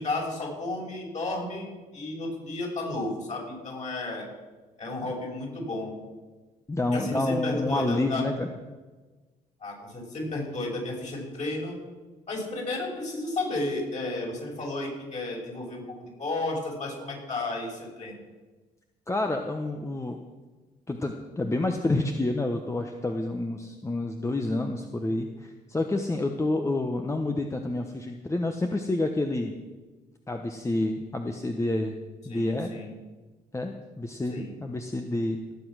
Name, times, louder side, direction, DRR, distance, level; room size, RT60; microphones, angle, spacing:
voice 1, 0.0-4.3 4.8-5.9 6.9-8.3 9.6-11.8 12.3-15.8 16.2-18.2 32.3-32.9 34.3-34.5, left 2 dB, 45° left, -2 dB, 6.1 m, -33 dB
voice 2, 6.7-8.5 19.1-20.2 20.9-29.5 30.3-31.9 32.2-32.7 33.5-35.5, left 2 dB, 15° left, 4 dB, 1.1 m, -29 dB
18.5 x 7.9 x 6.3 m, 1.3 s
supercardioid pair, 75°, 17 cm